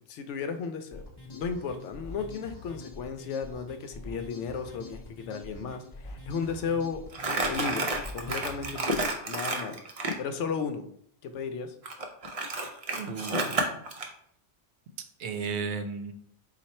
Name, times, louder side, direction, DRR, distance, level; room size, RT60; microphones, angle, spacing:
voice 1, 0.1-1.1 1.3-7.0 7.5-9.8 10.2-10.9 11.2-11.7, left 5 dB, 85° left, 8 dB, 0.9 m, -34 dB
sound 1, 0.9-9.1, left 2 dB, 25° left, 0.7 m, -45 dB
Crumpling crinkling, 7.1-10.2 11.8-14.1, right 2 dB, 45° right, 0.5 m, -30 dB
voice 2, 12.9-13.8 15.2-16.1, right 5 dB, 70° right, 8 dB, 0.8 m, -34 dB
4.2 x 2.4 x 4.2 m, 0.66 s
omnidirectional pair, 1.2 m